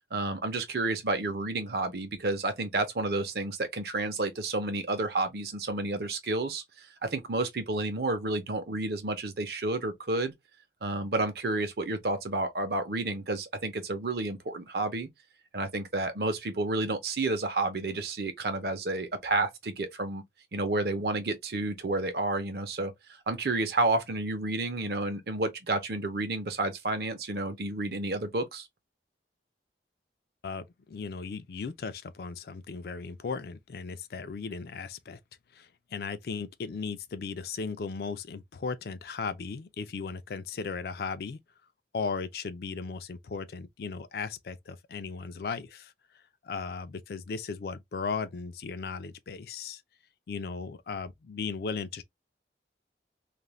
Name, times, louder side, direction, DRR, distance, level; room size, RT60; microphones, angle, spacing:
voice 1, 0.1-10.3 10.8-15.1 15.5-20.2 20.5-22.9 23.3-28.7, right 2 dB, 60° right, 0.7 m, -30 dB
voice 2, 30.4-35.2 35.5-41.4 41.9-45.9 46.4-49.8 50.3-52.0, left 5 dB, 55° left, 0.4 m, -36 dB
2.5 x 2.0 x 3.0 m
head